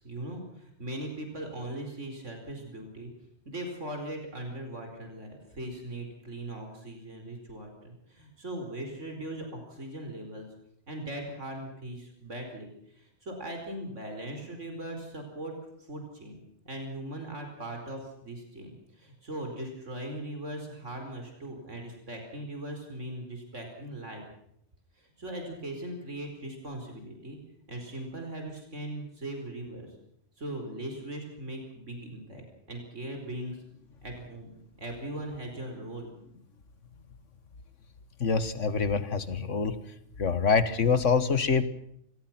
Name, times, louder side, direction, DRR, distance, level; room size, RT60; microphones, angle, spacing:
voice 1, 0.0-3.1 3.4-10.4 10.9-12.7 12.9-15.5 15.8-24.2 25.0-27.4 27.7-29.9 30.4-33.6 34.0-34.5 34.8-36.1, right 1 dB, 80° right, 3 dB, 5.0 m, -39 dB
voice 2, 38.2-39.7 40.2-41.6, left 5 dB, 80° left, 13 dB, 1.9 m, -25 dB
25.5 x 20.5 x 6.1 m, 0.71 s
omnidirectional pair, 1.2 m